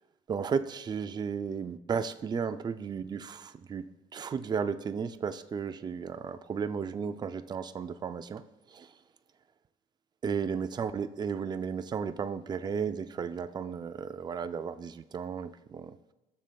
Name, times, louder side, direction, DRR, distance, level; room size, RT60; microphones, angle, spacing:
voice 1, 0.3-3.8 4.1-8.4 8.7-8.9 10.2-16.0, right 6 dB, 25° right, 11 dB, 0.4 m, -34 dB
16.5 x 6.5 x 2.3 m, 1.1 s
cardioid pair, 110°, 17 cm